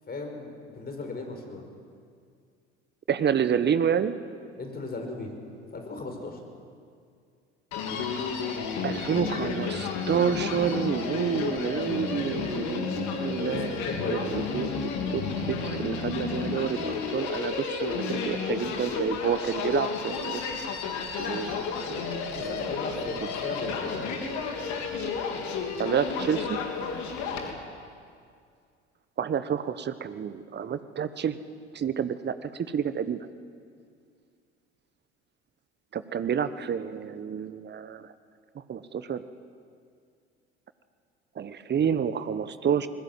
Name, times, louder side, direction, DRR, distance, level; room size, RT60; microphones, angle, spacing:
voice 1, 0.1-1.6 4.6-5.3 5.7-6.4 13.4-14.2 22.3-23.2 23.4-24.2 27.4-27.5, left 3 dB, 25° left, 3 dB, 5.4 m, -36 dB
voice 2, 3.1-4.1 8.8-13.8 14.1-14.7 15.1-15.2 15.5-20.4 21.2-22.6 25.8-26.6 29.2-31.4 31.7-33.2 35.9-38.1 38.5-39.2 41.4-42.9, right 8 dB, 30° right, 12 dB, 1.3 m, -29 dB
Human voice, 7.7-27.5, left 5 dB, 55° left, 3.2 m, -32 dB
27.0 x 20.5 x 7.6 m, 2.3 s
figure-of-eight pair, 65°, 35 cm